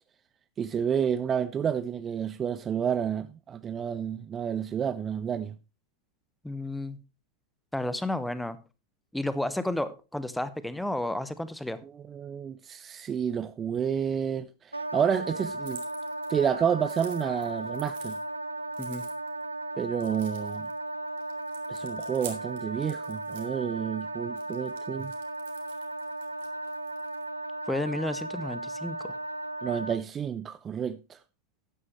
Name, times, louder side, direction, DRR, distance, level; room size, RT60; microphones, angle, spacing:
voice 1, 0.6-5.5 12.1-15.8 16.3-18.2 19.8-20.7 21.7-25.1 29.6-31.2, right 8 dB, 25° right, 0.5 m, -30 dB
voice 2, 6.4-7.0 7.7-8.6 9.1-11.8 18.8-19.0 27.7-29.2, left 1 dB, 5° left, 0.9 m, -32 dB
Wind instrument woodwind instrument, 14.7-30.0, right 2 dB, 85° right, 0.5 m, -36 dB
sound 1, 15.6-16.5 16.8-18.2 18.7-19.4 19.9-20.8 21.2-23.5 24.4-27.2, right 9 dB, 55° right, 2.4 m, -48 dB
12.5 x 9.7 x 3.1 m
figure-of-eight pair, 90°, 0 cm